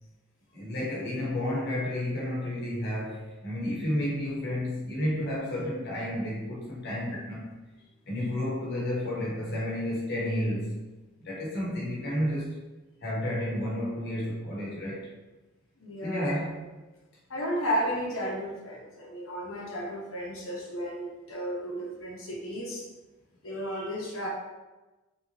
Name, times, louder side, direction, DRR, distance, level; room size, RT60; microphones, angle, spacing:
voice 1, 0.5-7.5 8.1-10.8 11.2-12.6 13.0-15.1 16.0-16.6, left 1 dB, 50° left, -5 dB, 1.1 m, -31 dB
voice 2, 15.8-16.3 17.3-22.8 23.4-24.3, equal, 70° left, -3 dB, 1.0 m, -33 dB
3.5 x 2.9 x 2.8 m, 1.1 s
head